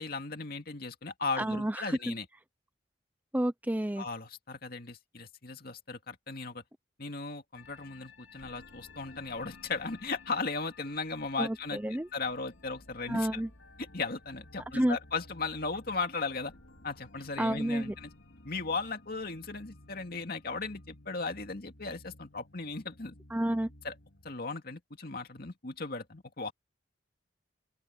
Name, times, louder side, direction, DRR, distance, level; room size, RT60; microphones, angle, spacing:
voice 1, 0.0-2.3 4.0-6.6 7.0-13.4 13.8-16.5 16.8-18.1 18.4-23.2 23.8-23.9 24.2-26.5, left 4 dB, 50° left, 2.3 m, -37 dB
voice 2, 1.4-2.1 3.3-4.1 11.4-12.1 13.1-13.5 14.7-15.0 17.4-17.9 23.3-23.7, right 1 dB, 10° right, 0.6 m, -30 dB
sound 1, 7.5-24.4, left 2 dB, 90° left, 3.1 m, -55 dB
open air
head